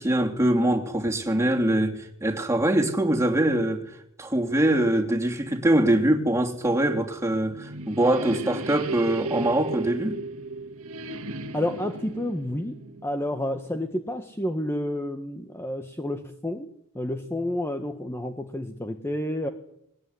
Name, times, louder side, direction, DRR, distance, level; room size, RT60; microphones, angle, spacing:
voice 1, 0.0-3.8 4.2-10.2, right 1 dB, 15° right, 3.2 m, -23 dB
sound 1, 7.1-13.8, right 3 dB, 70° right, 1.9 m, -35 dB
voice 2, 11.5-16.7 16.9-19.5, left 1 dB, 10° left, 1.5 m, -30 dB
21.0 x 19.5 x 9.8 m
head